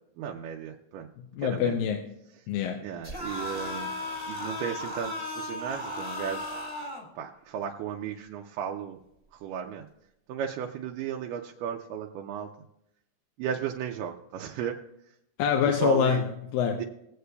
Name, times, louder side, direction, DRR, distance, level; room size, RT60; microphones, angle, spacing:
voice 1, 0.2-1.1 1.4-1.8 2.8-3.9 4.3-6.5 7.2-9.0 9.3-9.9 10.3-12.5 13.4-14.8 15.7-16.2 16.8-16.9, right 8 dB, 80° right, 2.1 m, -34 dB
voice 2, 1.3-2.2 2.5-2.9 15.4-16.9, left 8 dB, 85° left, 2.5 m, -26 dB
sound 1, 3.0-7.0, left 2 dB, 15° left, 1.2 m, -35 dB
21.5 x 8.1 x 2.3 m
omnidirectional pair, 4.0 m